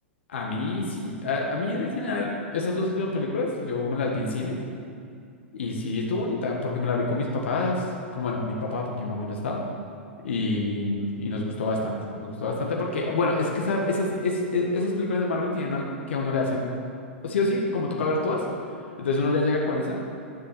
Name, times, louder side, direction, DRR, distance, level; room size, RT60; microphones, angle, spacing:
voice 1, 0.3-4.6 5.5-9.6 10.2-16.7 17.2-18.4 19.0-20.1, left 2 dB, 70° left, -1 dB, 1.6 m, -27 dB
11.0 x 7.1 x 7.0 m, 2.4 s
figure-of-eight pair, 105°, 7 cm